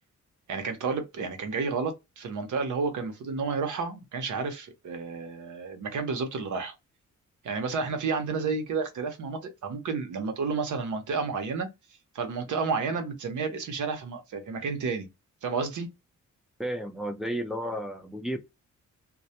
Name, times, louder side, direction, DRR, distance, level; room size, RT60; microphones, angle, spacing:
voice 1, 0.5-6.7 7.4-11.7 12.1-15.1 15.4-15.9, right 4 dB, 75° right, 0.8 m, -31 dB
voice 2, 16.6-18.4, equal, ahead, 0.3 m, -32 dB
2.2 x 2.0 x 2.7 m
wide cardioid pair, 150°, 30 cm